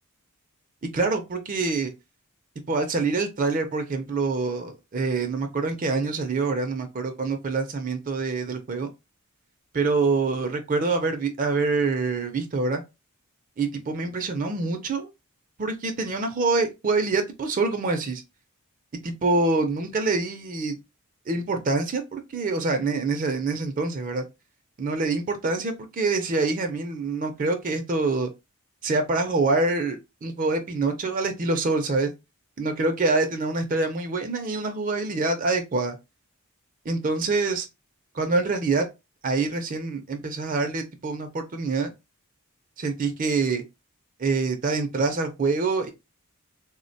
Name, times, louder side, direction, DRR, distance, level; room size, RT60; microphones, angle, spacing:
voice 1, 0.9-1.9 2.7-8.9 9.7-12.8 13.6-15.1 15.6-18.2 19.0-20.7 21.3-24.2 24.8-28.3 28.8-32.1 32.6-36.0 36.9-37.7 38.1-38.8 39.2-41.9 42.8-43.6 44.2-45.9, right 3 dB, 35° right, 0.4 m, -25 dB
3.3 x 2.1 x 2.6 m
head